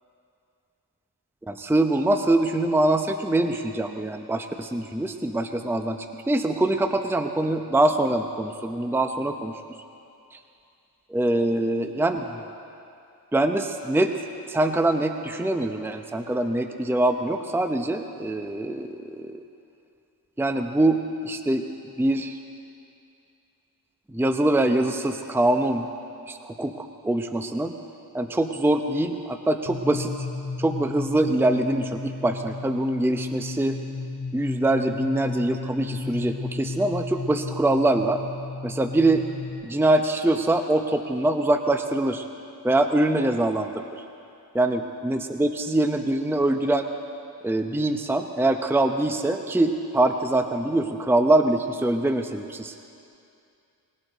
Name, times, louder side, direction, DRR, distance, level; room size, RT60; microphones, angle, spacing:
voice 1, 1.5-9.6 10.3-10.4 11.1-12.4 13.3-19.4 20.4-21.6 21.9-22.4 24.1-25.9 26.3-27.7 28.1-30.1 30.6-33.8 34.3-38.2 38.6-39.3 39.6-42.3 42.6-43.9 44.5-46.9 47.4-52.7, right 1 dB, 5° right, 6 dB, 0.7 m, -24 dB
sound 1, 29.7-39.5, left 3 dB, 60° left, 2.7 m, -34 dB
21.0 x 17.5 x 4.0 m, 2.6 s
cardioid pair, 75°, 41 cm